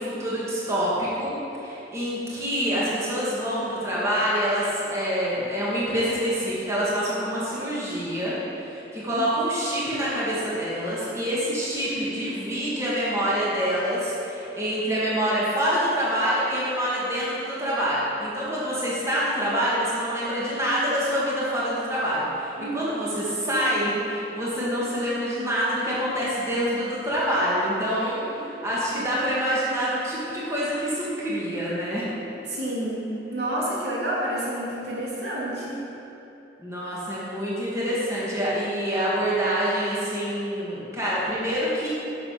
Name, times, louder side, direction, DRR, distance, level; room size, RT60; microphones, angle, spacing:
voice 1, 0.0-8.4 8.6-32.0 36.6-41.9, equal, 15° right, -8 dB, 2.1 m, -26 dB
voice 2, 22.6-23.0 23.5-23.6 27.9-28.5 32.5-33.0 33.3-35.8, right 1 dB, 80° right, -6 dB, 2.6 m, -30 dB
11.0 x 6.8 x 6.0 m, 3.0 s
head